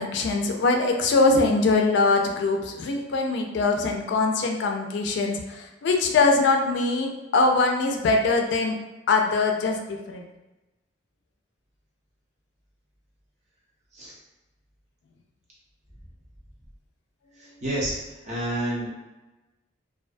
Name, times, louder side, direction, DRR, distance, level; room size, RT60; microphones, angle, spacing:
voice 1, 0.0-8.7 9.1-10.3, left 3 dB, 65° left, 2 dB, 0.3 m, -22 dB
voice 2, 17.6-18.0 18.2-18.9, right 1 dB, 35° right, -5 dB, 0.7 m, -28 dB
2.4 x 2.1 x 2.5 m, 1.1 s
head